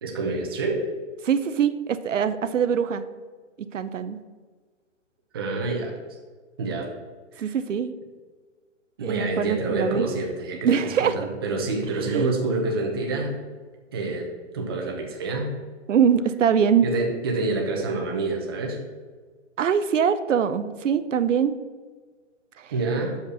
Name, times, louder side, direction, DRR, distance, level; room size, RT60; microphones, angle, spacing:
voice 1, 0.0-0.8 5.3-6.0 6.6-6.9 7.4-7.5 9.0-13.4 13.9-15.5 16.8-18.8 22.7-23.1, right 3 dB, 20° right, 1 dB, 0.8 m, -27 dB
voice 2, 1.2-3.0 3.6-4.2 7.4-7.9 9.0-10.1 10.6-11.2 12.1-12.3 15.9-16.9 19.6-21.6 22.6-22.7, right 7 dB, 80° right, 12 dB, 0.7 m, -23 dB
6.6 x 5.1 x 6.4 m, 1.5 s
hypercardioid pair, 170°, 37 cm